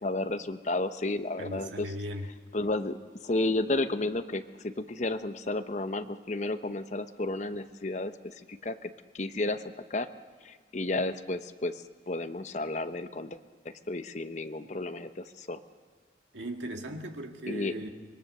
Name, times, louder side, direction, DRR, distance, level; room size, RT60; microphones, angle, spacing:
voice 1, 0.0-1.9 2.5-3.0 3.2-8.1 8.5-9.6 9.9-10.1 10.4-13.4 13.9-15.6 17.5-17.8, left 2 dB, 40° left, 0.9 m, -32 dB
voice 2, 1.4-2.3 16.3-17.9, equal, 85° right, 2.0 m, -38 dB
25.5 x 22.0 x 6.7 m
head